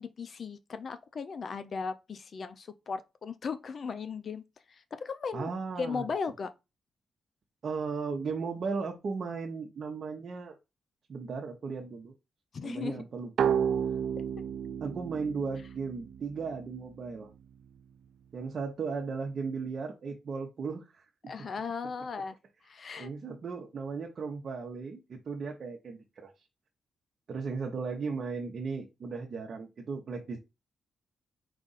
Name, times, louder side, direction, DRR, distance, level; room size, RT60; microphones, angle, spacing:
voice 1, 0.0-5.5 5.8-6.5 12.5-13.0 21.3-22.4 22.6-23.1, left 5 dB, 55° left, 0.5 m, -37 dB
voice 2, 5.3-6.1 7.6-10.5 11.1-12.1 12.6-13.6 14.8-17.3 18.3-21.0 23.0-26.3 27.3-30.4, right 5 dB, 60° right, 0.8 m, -36 dB
sound 1, 13.4-16.9, right 8 dB, 80° right, 0.3 m, -31 dB
4.9 x 2.5 x 4.0 m
cardioid pair, 75°, 0 cm